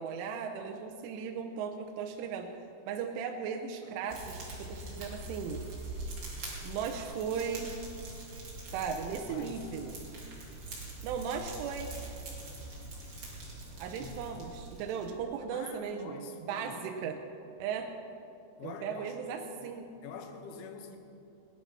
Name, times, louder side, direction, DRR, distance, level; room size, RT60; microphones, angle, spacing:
voice 1, 0.0-2.5 2.9-5.6 6.6-7.7 8.7-9.9 11.0-11.9 13.8-17.2 17.6-17.9 18.6-19.9, right 6 dB, 85° right, 4 dB, 3.2 m, -37 dB
Fire, 4.1-15.2, right 2 dB, 30° right, 3.0 m, -43 dB
voice 2, 9.3-9.7 14.0-14.2 15.5-16.8 18.6-19.7 20.0-21.0, left 6 dB, 75° left, 5 dB, 3.3 m, -46 dB
18.0 x 11.0 x 5.8 m, 2.7 s
omnidirectional pair, 5.7 m